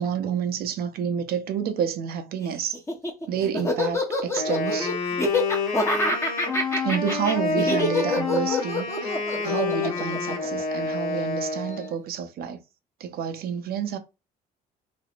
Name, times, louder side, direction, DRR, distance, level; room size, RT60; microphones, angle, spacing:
voice 1, 0.0-2.8 3.3-5.1 6.8-12.6 13.0-14.0, right 7 dB, 65° right, 0.7 m, -29 dB
Laughter, 2.7-11.1, left 2 dB, 15° left, 1.0 m, -26 dB
Wind instrument woodwind instrument, 4.4-12.0, left 4 dB, 85° left, 1.4 m, -28 dB
3.2 x 2.7 x 2.5 m
cardioid pair, 110°, 17 cm